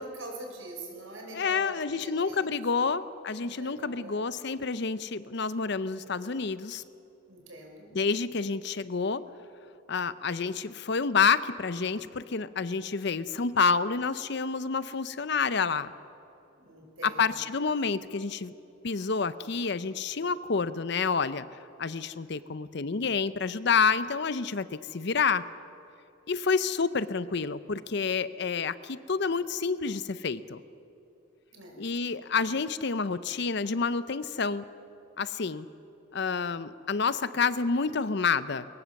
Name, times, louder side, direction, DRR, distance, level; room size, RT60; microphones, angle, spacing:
voice 1, 0.0-2.9 3.2-4.3 7.3-8.0 16.6-17.4 31.5-31.9 32.3-32.4, right 2 dB, 80° right, 1 dB, 5.4 m, -44 dB
voice 2, 1.3-6.8 7.9-9.2 9.9-15.9 17.0-18.5 18.8-21.5 21.8-25.4 26.3-30.6 31.8-34.6 35.2-35.7 36.1-38.6, left 5 dB, 55° left, 14 dB, 0.6 m, -28 dB
22.5 x 18.5 x 7.2 m, 2.7 s
head